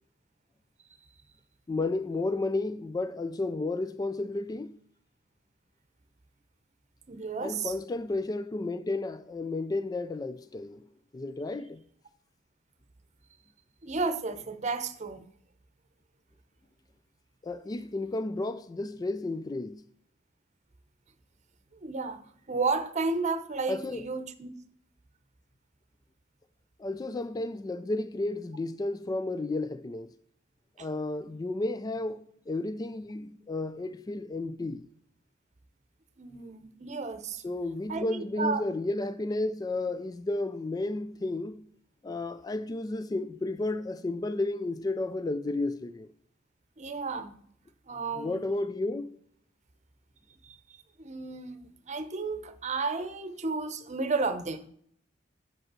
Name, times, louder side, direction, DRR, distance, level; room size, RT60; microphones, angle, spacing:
voice 1, 1.7-4.8 7.4-10.8 11.1-11.8 17.4-19.9 23.7-24.0 26.8-30.1 30.8-34.9 37.4-41.7 42.0-46.1 48.2-49.1, left 2 dB, 20° left, 0.3 m, -32 dB
voice 2, 7.1-7.7 13.8-15.2 21.8-22.2 22.5-24.5 30.8-30.9 36.2-37.4 37.9-38.6 46.8-47.4 47.9-48.4 50.4-54.7, right 4 dB, 40° right, 0.8 m, -32 dB
7.4 x 5.3 x 7.5 m
head